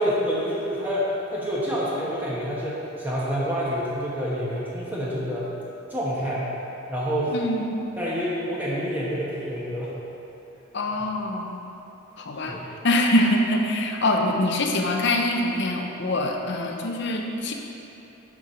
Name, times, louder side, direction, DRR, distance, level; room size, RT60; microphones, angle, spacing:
voice 1, 0.0-5.5 5.9-6.5 6.9-7.4 8.0-10.0 12.4-12.7, equal, 10° right, -8 dB, 1.1 m, -27 dB
voice 2, 7.3-7.8 10.7-11.6 12.2-12.6 12.8-17.5, left 1 dB, 55° left, 2 dB, 0.7 m, -24 dB
6.9 x 6.1 x 5.1 m, 2.9 s
head